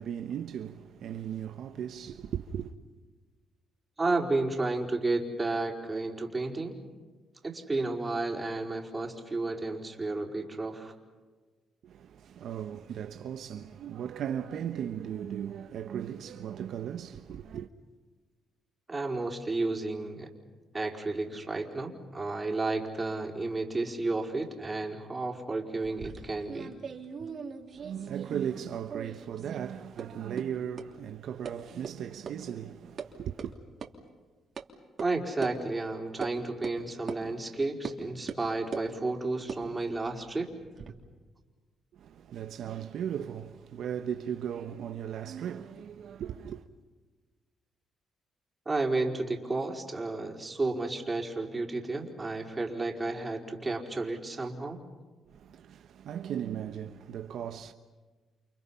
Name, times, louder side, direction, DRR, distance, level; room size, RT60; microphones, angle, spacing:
voice 1, 0.0-2.7 11.8-17.7 27.7-33.6 41.9-46.6 55.3-57.7, right 9 dB, 70° right, 1.0 m, -37 dB
voice 2, 4.0-6.7 7.4-10.9 18.9-20.3 20.7-26.7 35.0-40.5 48.6-54.8, right 2 dB, 20° right, 4.7 m, -32 dB
sound 1, 25.8-28.6 28.9-29.6 30.0-30.1 30.4-30.5 30.8-30.9 31.4-31.5 31.8-31.9 32.3-32.4 32.7-33.1 33.4-33.5 33.8-33.9 34.6-34.7 35.0-35.1 35.4-35.5 36.2-36.3 36.6-36.8 37.1-37.2 37.8-38.0 38.3-38.9 39.4-40.9, right 6 dB, 50° right, 3.1 m, -40 dB
29.5 x 29.0 x 5.8 m
cardioid pair, 90°, 0 cm